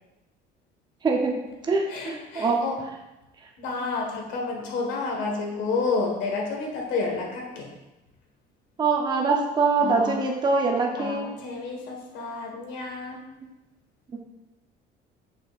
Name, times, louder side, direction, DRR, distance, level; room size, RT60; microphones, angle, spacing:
voice 1, 1.0-1.4 1.7-2.6 8.8-11.3, right 4 dB, 25° right, 0 dB, 0.8 m, -23 dB
voice 2, 1.9-2.8 3.6-7.7 9.8-10.2 11.0-13.2, left 4 dB, 80° left, 0 dB, 1.6 m, -30 dB
6.3 x 6.0 x 2.5 m, 1.0 s
cardioid pair, 140°, 19 cm